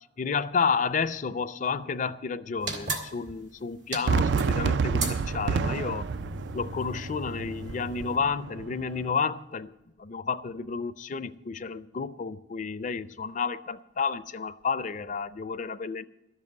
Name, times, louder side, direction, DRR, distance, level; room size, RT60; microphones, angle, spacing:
voice 1, 0.2-6.1 6.5-9.7 10.0-16.1, left 5 dB, 45° left, 0.5 m, -31 dB
sound 1, 2.6-8.2, right 2 dB, 90° right, 1.9 m, -37 dB
Fireworks, 4.1-9.1, right 5 dB, 65° right, 0.3 m, -29 dB
12.5 x 7.4 x 7.9 m
head